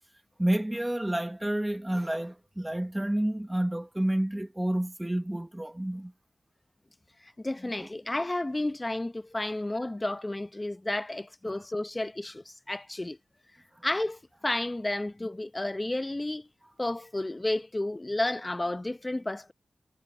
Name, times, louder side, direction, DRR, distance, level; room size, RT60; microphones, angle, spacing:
voice 1, 0.4-6.1 7.8-7.9 11.5-11.6, right 1 dB, 15° right, 1.2 m, -29 dB
voice 2, 7.2-13.2 13.8-16.5 16.8-19.5, left 1 dB, 25° left, 0.8 m, -32 dB
cardioid pair, 50°, 0 cm